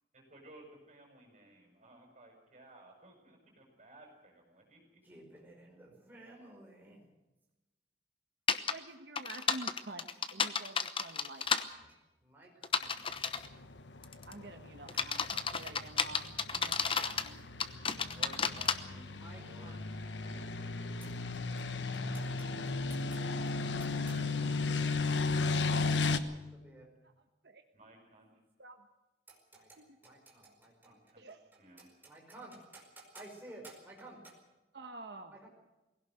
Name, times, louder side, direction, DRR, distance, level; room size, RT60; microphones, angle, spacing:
voice 1, 0.1-5.0 18.2-22.0 23.6-24.9 25.7-26.3 27.7-28.4 31.0-31.3 31.6-31.9, right 2 dB, 40° right, 2 dB, 7.4 m, -57 dB
voice 2, 5.0-7.0 11.4-11.5 11.8-13.0 13.4-13.5 14.9-15.0 18.0-18.2 19.1-19.8 21.0-21.7 21.9-25.1 25.4-26.9 29.3-31.1 31.8-34.4 35.3-35.5, right 2 dB, 10° right, -1 dB, 5.3 m, -55 dB
sound 1, 8.5-8.7 9.1-11.6 12.6-13.5 14.0-14.3 14.9-17.3 17.6-18.7, left 6 dB, 30° left, 1.0 m, -32 dB
voice 3, 8.6-11.5 14.3-17.5 23.0-23.1 27.0-27.1 27.4-27.6 28.6-28.9 29.8-29.9 31.2-31.4 34.7-35.4, right 2 dB, 70° right, 5 dB, 1.3 m, -48 dB
sound 2, 13.3-26.2, left 3 dB, 90° left, 1.2 m, -35 dB
20.5 x 17.0 x 7.9 m, 1.0 s
head